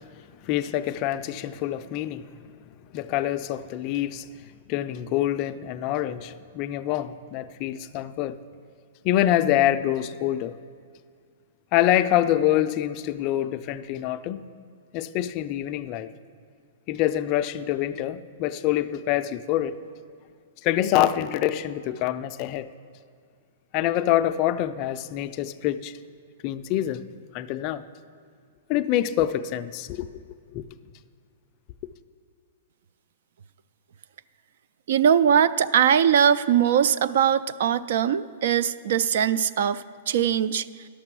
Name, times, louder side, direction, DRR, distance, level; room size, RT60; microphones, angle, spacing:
voice 1, 0.4-2.3 2.9-4.3 4.7-8.4 9.0-10.5 11.7-14.4 14.9-16.1 16.9-19.8 20.6-22.7 23.7-26.0 26.4-27.0 27.3-27.8 28.7-30.1 30.5-30.6, left 12 dB, 35° left, 0.3 m, -25 dB
voice 2, 34.9-40.7, right 8 dB, 60° right, 0.3 m, -21 dB
11.5 x 6.6 x 6.1 m
hypercardioid pair, 155°, 0 cm